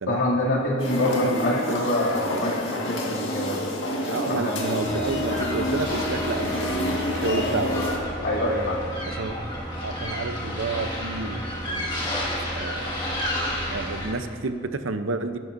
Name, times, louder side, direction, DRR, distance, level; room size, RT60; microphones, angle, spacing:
voice 1, 0.1-3.6 4.3-4.5 8.2-8.9 13.3-13.5, left 1 dB, 90° left, -5 dB, 2.5 m, -25 dB
sound 1, 0.8-8.0, left 1 dB, 70° left, 1.8 m, -28 dB
voice 2, 4.1-7.9 9.0-12.2 12.5-13.1 13.7-15.4, right 3 dB, 85° right, 9 dB, 0.7 m, -30 dB
sound 2, 4.8-14.1, equal, 25° left, 1.8 m, -31 dB
18.0 x 11.0 x 2.6 m, 2.2 s
head